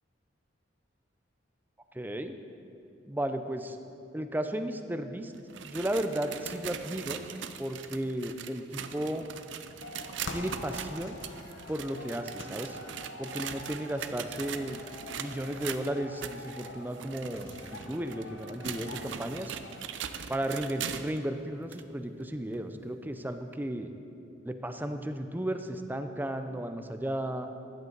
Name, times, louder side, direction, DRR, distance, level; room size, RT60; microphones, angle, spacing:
voice 1, 1.9-2.4 3.1-3.8 4.1-5.3 5.6-7.2 7.6-9.3 10.3-11.2 11.7-12.8 13.2-14.8 15.1-19.6 20.3-23.9 24.4-27.5, right 1 dB, 10° right, 8 dB, 0.5 m, -34 dB
sound 1, 5.3-21.2 21.7-21.8 22.5-22.6 23.5-23.6, right 8 dB, 75° right, 0.5 m, -41 dB
sound 2, 9.8-19.9, left 2 dB, 85° left, 1.0 m, -45 dB
14.0 x 11.0 x 3.9 m, 2.7 s
head